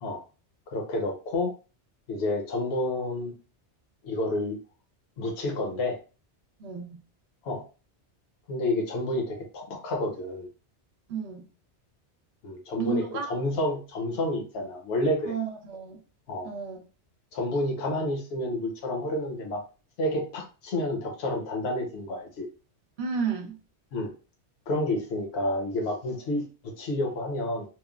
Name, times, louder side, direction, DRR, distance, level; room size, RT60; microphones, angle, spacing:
voice 1, 0.7-1.5 2.1-3.3 4.0-4.6 5.2-6.0 7.4-7.6 8.5-10.5 12.4-15.3 16.3-16.5 17.3-19.6 20.0-22.5 23.9-24.1 24.7-26.4 26.8-27.7, left 1 dB, 65° left, 0.9 m, -29 dB
voice 2, 6.6-7.0 11.1-11.5 12.8-13.3 15.2-16.0 16.4-16.8 23.0-23.6, right 5 dB, 70° right, 0.8 m, -32 dB
3.0 x 2.1 x 2.3 m
omnidirectional pair, 1.2 m